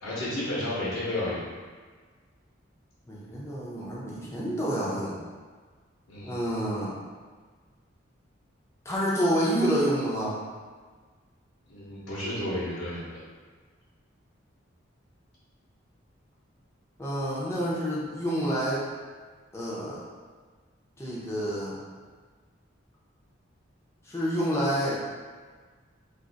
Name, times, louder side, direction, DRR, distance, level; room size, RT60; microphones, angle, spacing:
voice 1, 0.0-1.4 6.1-6.4 11.7-13.1, left 1 dB, 75° left, -10 dB, 0.9 m, -32 dB
voice 2, 3.1-5.2 6.2-6.9 8.8-10.4 17.0-18.9 19.5-20.0 21.0-21.8 24.1-25.0, equal, 15° left, -7 dB, 0.6 m, -28 dB
2.6 x 2.5 x 3.9 m, 1.5 s
head